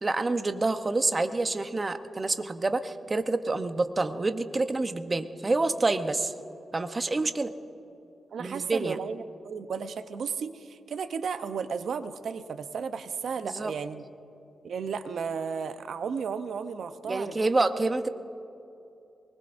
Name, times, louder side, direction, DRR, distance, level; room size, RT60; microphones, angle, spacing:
voice 1, 0.0-6.3 6.7-7.5 8.4-9.0 13.4-13.7 17.1-18.1, right 2 dB, 30° right, 9 dB, 0.8 m, -27 dB
voice 2, 8.3-14.0 14.6-17.3 17.7-17.8, right 6 dB, 75° right, 10 dB, 0.8 m, -34 dB
23.5 x 20.0 x 2.6 m, 2.8 s
cardioid pair, 85°, 0 cm